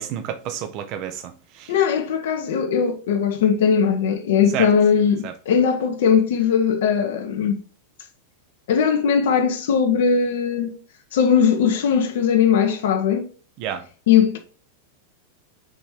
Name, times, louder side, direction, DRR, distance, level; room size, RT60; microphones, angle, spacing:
voice 1, 0.0-1.7 4.5-4.7 5.2-5.3 13.6-13.8, right 9 dB, 40° right, 0.7 m, -30 dB
voice 2, 1.7-7.6 8.7-10.8 11.1-13.3 14.1-14.4, left 7 dB, 55° left, 0.7 m, -19 dB
4.9 x 4.1 x 4.7 m
figure-of-eight pair, 90°, 0 cm